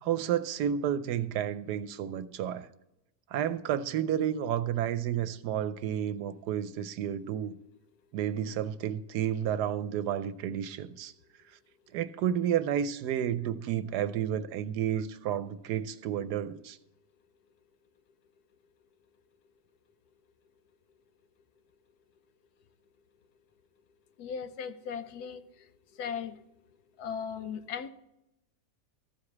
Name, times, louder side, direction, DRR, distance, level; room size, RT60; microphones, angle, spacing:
voice 1, 0.0-2.7 3.3-7.6 8.1-11.1 11.9-16.8, right 10 dB, 75° right, 1.2 m, -31 dB
voice 2, 24.2-25.7 25.9-26.4 27.0-27.9, left 7 dB, 70° left, 1.2 m, -37 dB
14.5 x 4.9 x 7.1 m
omnidirectional pair, 1.8 m